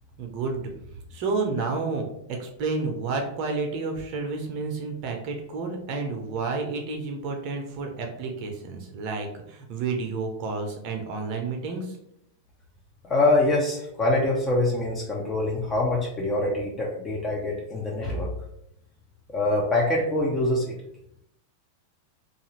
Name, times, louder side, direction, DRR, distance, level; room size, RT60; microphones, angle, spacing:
voice 1, 0.2-0.7 1.1-12.0, right 4 dB, 40° right, 3 dB, 0.6 m, -30 dB
voice 2, 13.0-18.3 19.3-20.8, left 2 dB, 20° left, -3 dB, 0.5 m, -24 dB
2.6 x 2.4 x 3.0 m, 0.75 s
figure-of-eight pair, 90°, 0 cm